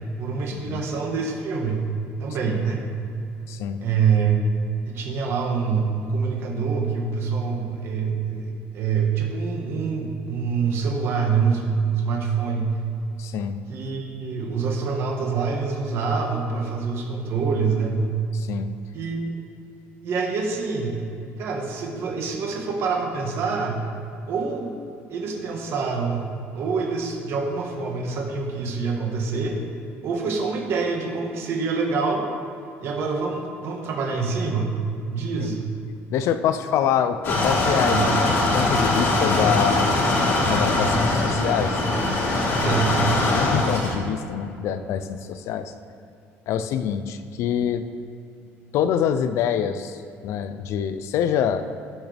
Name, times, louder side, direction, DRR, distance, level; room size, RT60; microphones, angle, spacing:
voice 1, 0.2-1.9 2.2-2.8 3.8-4.3 4.8-12.8 13.7-18.1 18.9-19.4 20.0-21.0 21.4-23.8 24.3-24.7 25.1-29.6 30.0-32.2 32.8-34.7 35.1-35.7 37.8-38.2 42.6-43.0, right 5 dB, 55° right, 0 dB, 1.6 m, -26 dB
voice 2, 3.5-3.8 13.2-13.6 18.3-18.7 35.4-35.6 36.1-38.3 38.5-39.9 40.4-41.8 43.3-45.7 46.5-47.8 48.7-51.7, left 9 dB, 65° left, 11 dB, 0.5 m, -25 dB
sound 1, 37.2-43.9, left 2 dB, 50° left, 2.1 m, -21 dB
16.0 x 6.3 x 3.5 m, 2.6 s
cardioid pair, 140°, 5 cm